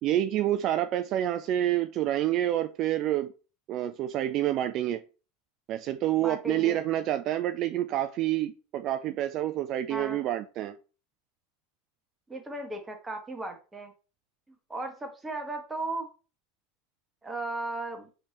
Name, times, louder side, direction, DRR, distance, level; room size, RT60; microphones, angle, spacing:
voice 1, 0.0-3.3 3.7-5.0 5.7-10.7, right 13 dB, 50° right, 9 dB, 0.3 m, -28 dB
voice 2, 6.2-6.8 9.9-10.2 12.3-13.9 14.7-16.1 17.2-18.1, right 2 dB, 15° right, 4 dB, 1.2 m, -36 dB
5.1 x 3.3 x 2.8 m, 0.35 s
hypercardioid pair, 105°, 0 cm